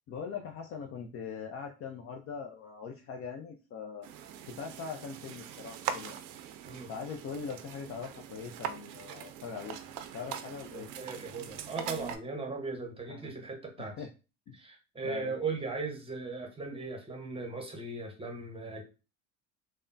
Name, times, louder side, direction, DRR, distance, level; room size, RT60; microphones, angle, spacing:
voice 1, 0.1-4.1 4.5-6.1 6.9-9.8 10.1-10.9 13.1-13.3 13.8-14.1 14.5-14.6 15.0-15.3, left 6 dB, 35° left, 3 dB, 0.4 m, -41 dB
sound 1, 4.0-12.2, right 9 dB, 60° right, 0.5 m, -42 dB
voice 2, 10.7-13.9 14.5-18.8, right 4 dB, 15° right, 2 dB, 0.9 m, -38 dB
3.4 x 2.1 x 2.5 m, 0.31 s
hypercardioid pair, 85°, 41 cm